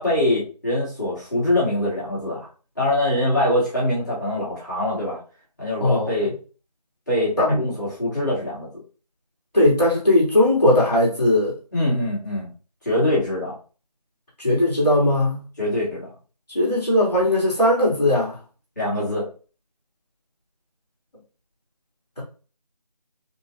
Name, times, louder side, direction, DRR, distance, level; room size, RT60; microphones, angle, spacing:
voice 1, 0.0-2.5 2.8-5.2 5.6-6.3 7.1-8.7 11.7-12.5 12.8-13.6 15.6-16.1 18.8-19.2, left 1 dB, 25° left, 1.2 m, -23 dB
voice 2, 5.8-6.1 7.4-7.6 9.5-11.5 14.4-15.4 16.5-18.3, left 1 dB, ahead, 1.2 m, -18 dB
3.6 x 2.7 x 2.6 m
figure-of-eight pair, 170°, 21 cm